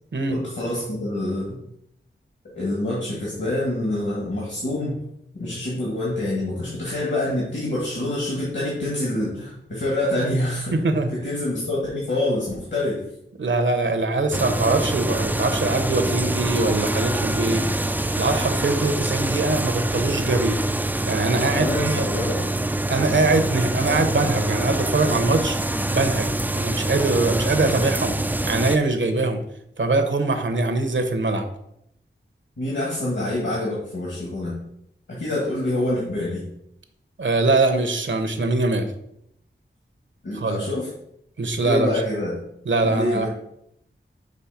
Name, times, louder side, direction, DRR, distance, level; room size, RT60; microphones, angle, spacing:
voice 1, 0.3-1.6 2.5-5.0 5.3-10.8 11.1-13.0 21.5-22.4 32.6-34.5 35.1-36.5 40.2-40.9 41.6-42.4 42.8-43.3, left 1 dB, 65° left, -5 dB, 2.0 m, -26 dB
voice 2, 10.7-11.1 13.4-17.6 18.2-20.6 21.1-22.1 22.9-25.6 25.9-28.2 28.5-29.4 29.8-31.5 37.2-38.9 40.3-40.6 41.4-41.9 42.7-43.3, right 3 dB, 65° right, 7 dB, 0.9 m, -22 dB
sound 1, 14.3-28.8, right 1 dB, 10° right, 0.3 m, -25 dB
6.3 x 3.3 x 5.8 m, 0.76 s
wide cardioid pair, 75°, 20 cm